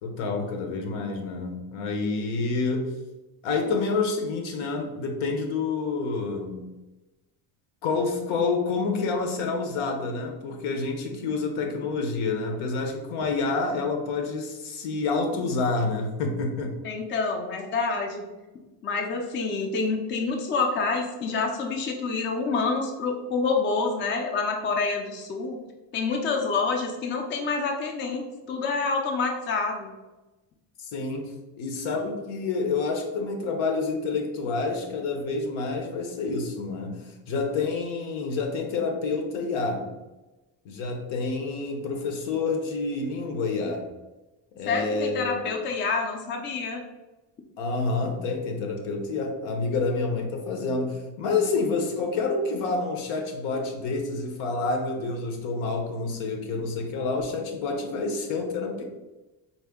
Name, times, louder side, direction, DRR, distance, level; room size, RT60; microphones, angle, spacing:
voice 1, 0.0-2.9 3.4-6.6 7.8-16.8 30.8-31.3 31.6-39.9 40.6-43.9 44.5-45.5 47.6-58.8, left 3 dB, 80° left, 3 dB, 0.9 m, -28 dB
voice 2, 16.8-18.3 18.8-25.6 25.9-29.9 44.7-46.8, left 4 dB, 25° left, 2 dB, 0.4 m, -27 dB
4.2 x 2.1 x 3.5 m, 1.1 s
cardioid pair, 135°, 46 cm